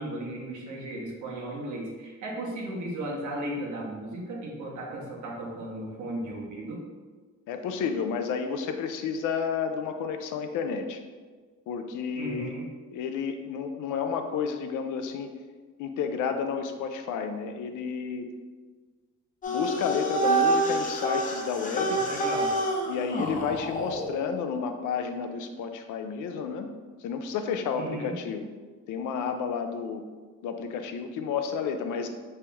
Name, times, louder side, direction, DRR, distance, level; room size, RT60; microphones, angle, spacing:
voice 1, 0.0-6.8 12.1-12.6 21.9-22.5 27.7-28.2, right 1 dB, 75° right, -2 dB, 1.0 m, -35 dB
voice 2, 7.5-11.0 11.7-12.5 12.9-15.3 15.8-18.3 19.5-22.0 22.9-26.7 27.0-28.5 28.9-30.0 30.4-32.1, left 6 dB, 80° left, 6 dB, 0.5 m, -31 dB
sound 1, 19.4-24.1, right 2 dB, 25° left, 0.6 m, -27 dB
3.3 x 2.9 x 3.4 m, 1.4 s
cardioid pair, 90°, 30 cm